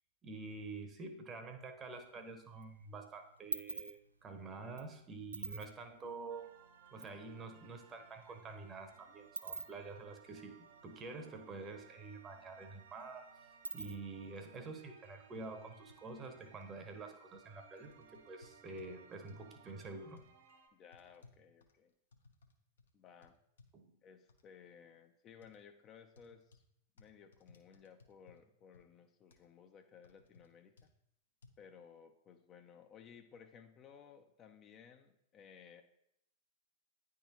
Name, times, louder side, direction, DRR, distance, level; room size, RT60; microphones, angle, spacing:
voice 1, 0.2-6.5 6.9-20.2 23.7-23.9, right 3 dB, 25° right, 6 dB, 0.9 m, -48 dB
sound 1, 1.9-2.6 2.9-7.2 7.5-7.6 7.8-11.6 11.9-12.0 12.3-14.3, right 3 dB, 85° right, 0.4 m, -46 dB
sound 2, 6.3-20.7, right 6 dB, 60° right, 0.8 m, -62 dB
sound 3, 14.9-15.0 15.3-15.5 15.9-16.7 17.3-17.5 17.8-18.9 19.3-19.5 20.2-20.3 20.9-22.5 22.8-22.9 23.2-23.7 24.3-24.4 25.4-25.6 26.2-26.6 27.0-28.4 28.7-28.8 29.3-29.5 30.0-30.5 30.8-30.9 31.4-31.5, left 3 dB, 70° left, 0.9 m, -62 dB
voice 2, 20.7-21.9 22.9-23.4 24.0-26.6 27.0-30.9 31.6-35.8, left 7 dB, 30° left, 5 dB, 0.6 m, -58 dB
10.0 x 3.6 x 3.0 m, 0.77 s
figure-of-eight pair, 95°, 0 cm